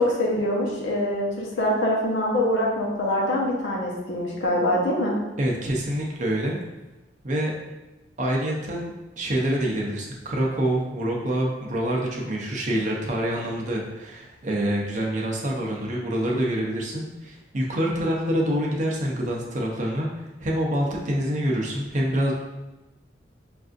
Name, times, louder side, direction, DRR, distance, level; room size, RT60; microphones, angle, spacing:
voice 1, 0.0-5.2, left 1 dB, 80° left, -3 dB, 0.8 m, -24 dB
voice 2, 5.4-6.6 7.2-7.5 8.2-22.3, right 1 dB, 40° right, -1 dB, 0.6 m, -26 dB
5.3 x 2.5 x 2.4 m, 1.0 s
head